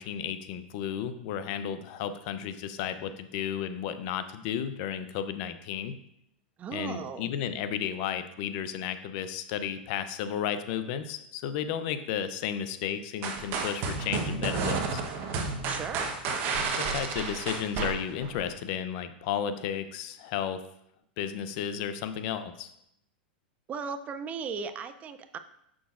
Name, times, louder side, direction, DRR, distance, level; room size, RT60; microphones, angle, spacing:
voice 1, 0.0-5.9 6.7-15.0 16.8-20.6 21.2-22.7, left 9 dB, 55° left, 11 dB, 0.5 m, -33 dB
voice 2, 6.6-7.3 15.6-16.1 23.7-25.4, right 6 dB, 25° right, 11 dB, 0.4 m, -36 dB
sound 1, 13.2-18.5, right 4 dB, 45° right, 1.0 m, -31 dB
6.8 x 6.2 x 2.5 m, 0.76 s
hypercardioid pair, 115°, 5 cm